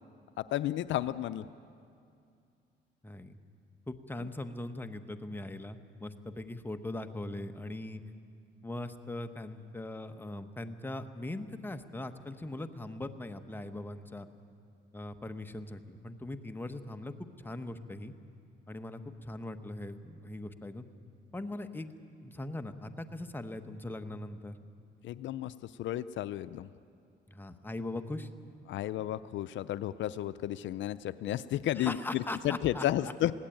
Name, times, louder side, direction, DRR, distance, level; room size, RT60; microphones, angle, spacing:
voice 1, 0.4-1.4 25.0-26.7 28.7-33.3, left 13 dB, 70° left, 14 dB, 0.5 m, -33 dB
voice 2, 3.0-3.4 3.9-8.0 8.6-14.3 14.9-18.1 18.7-20.8 21.3-24.6 27.3-28.3 31.8-33.1, left 1 dB, 10° left, 8 dB, 1.0 m, -40 dB
20.5 x 16.5 x 9.1 m, 2.5 s
cardioid pair, 100°, 20 cm